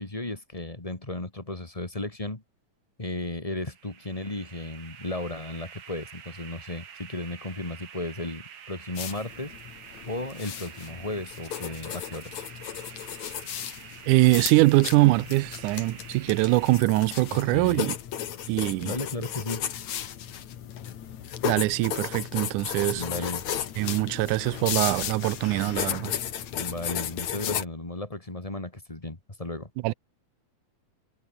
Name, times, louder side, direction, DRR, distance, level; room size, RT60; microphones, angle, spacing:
voice 1, 0.0-2.4 3.0-9.5 10.1-12.3 17.3-17.9 18.8-19.7 22.9-23.4 26.5-29.7, left 2 dB, 15° left, 2.0 m, -35 dB
sound 1, 3.6-16.8, right 8 dB, 50° right, 2.6 m, -47 dB
sound 2, 8.9-27.6, left 10 dB, 65° left, 3.0 m, -35 dB
voice 2, 14.1-18.0 18.5-19.0 21.4-23.0 23.8-26.1 29.8-29.9, right 20 dB, 85° right, 2.1 m, -23 dB
omnidirectional pair, 3.5 m